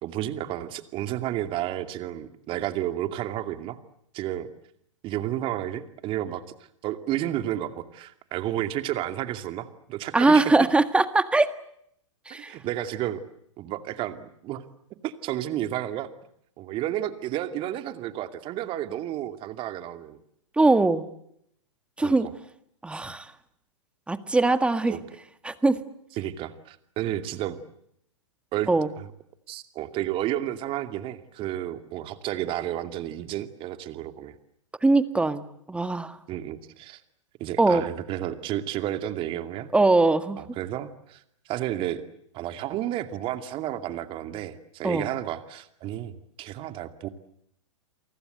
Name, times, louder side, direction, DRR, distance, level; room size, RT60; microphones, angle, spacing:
voice 1, 0.0-3.8 4.1-4.5 5.0-6.4 6.8-10.5 12.5-13.2 13.6-14.6 15.0-16.1 16.6-20.2 22.0-22.3 24.9-25.0 26.2-27.6 28.5-28.7 29.0-29.1 29.5-34.3 36.3-37.0 37.4-39.7 40.4-42.0 42.3-47.1, right 12 dB, 35° right, 10 dB, 2.5 m, -31 dB
voice 2, 10.1-11.5 12.3-12.5 20.6-21.1 22.0-22.3 22.8-23.3 24.1-24.9 25.4-25.8 28.7-28.9 34.8-36.2 37.6-37.8 39.7-40.4 44.8-45.1, right 2 dB, 5° right, 12 dB, 1.7 m, -21 dB
29.5 x 24.0 x 8.0 m, 0.73 s
hypercardioid pair, 115°, 16 cm